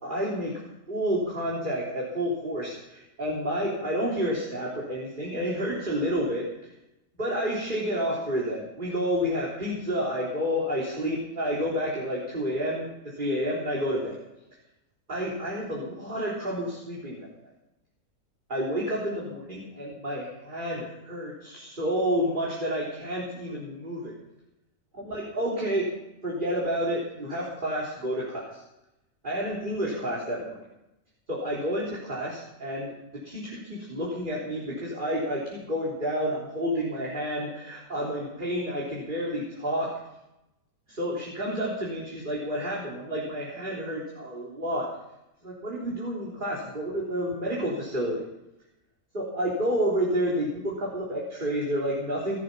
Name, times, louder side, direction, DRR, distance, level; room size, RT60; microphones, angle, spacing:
voice 1, 0.0-0.6 0.9-6.5 7.2-14.1 15.1-17.3 18.5-24.1 25.1-25.9 26.2-28.6 29.2-30.6 31.3-39.9 40.9-44.9 45.4-48.2 49.1-52.4, equal, 35° right, -5 dB, 4.0 m, -30 dB
19.5 x 12.0 x 5.7 m, 0.90 s
omnidirectional pair, 1.6 m